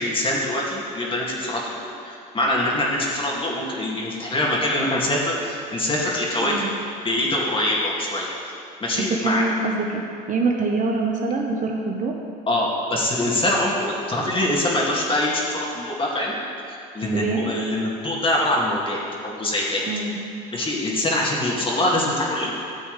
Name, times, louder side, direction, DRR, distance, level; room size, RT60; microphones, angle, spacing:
voice 1, 0.0-6.6 7.0-8.5 8.8-9.5 12.5-16.4 16.7-19.8 20.5-22.5, left 1 dB, 25° left, -4 dB, 2.3 m, -24 dB
voice 2, 9.0-12.1 17.1-17.5 19.9-20.2, right 3 dB, 40° right, 1 dB, 1.0 m, -25 dB
13.5 x 7.9 x 3.4 m, 2.5 s
supercardioid pair, 85°, 21 cm